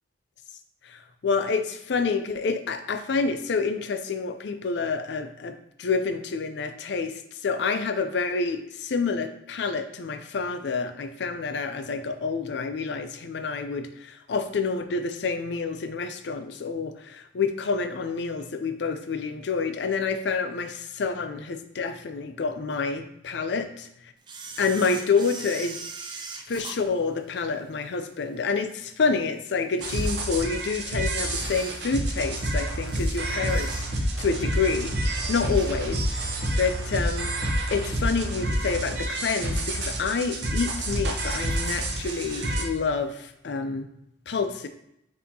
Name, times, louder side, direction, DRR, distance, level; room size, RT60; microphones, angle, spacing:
voice 1, 0.8-23.9 24.6-25.8 26.5-37.4 37.7-43.9 44.3-44.7, left 4 dB, 65° left, 8 dB, 0.4 m, -28 dB
Camera, 24.2-27.8 28.3-28.4 29.1-29.2 29.7-30.7 31.2-34.2 34.6-34.8 35.2-36.2 36.6-36.7 37.6-37.7 38.3-38.7 39.1-39.2 39.4-39.5 39.7-39.8 40.5-41.1 41.5-42.6 42.9-43.0 43.3-43.4, right 4 dB, 25° right, 0.4 m, -41 dB
sound 1, 29.8-42.6, right 1 dB, 65° right, 0.7 m, -28 dB
6.5 x 2.8 x 2.7 m, 0.78 s
head